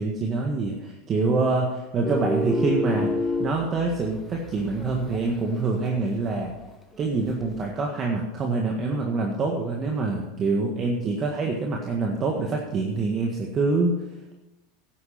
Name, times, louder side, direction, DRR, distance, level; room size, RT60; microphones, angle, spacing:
voice 1, 0.0-6.5 7.0-14.0, right 3 dB, 30° right, 0 dB, 1.7 m, -26 dB
sound 1, 2.0-5.4 5.8-6.1 6.6-7.6, left 2 dB, 10° left, 1.7 m, -29 dB
11.5 x 9.5 x 5.9 m, 1.0 s
supercardioid pair, 130°, 0 cm